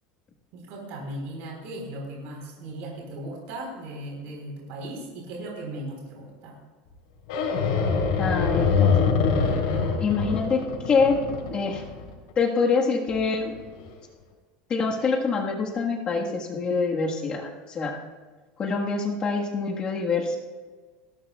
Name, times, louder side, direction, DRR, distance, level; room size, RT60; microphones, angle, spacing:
voice 1, 0.5-6.5, right 1 dB, 55° right, -1 dB, 3.9 m, -37 dB
sound 1, 7.3-12.3 13.1-13.2 13.5-13.8, left 5 dB, 75° left, 3.6 m, -24 dB
voice 2, 8.2-9.4 10.0-11.2 11.5-11.8 12.4-13.5 14.7-18.0 18.6-20.4, left 4 dB, 25° left, 0 dB, 1.5 m, -25 dB
19.5 x 16.5 x 2.3 m, 1.4 s
cardioid pair, 165°, 4 cm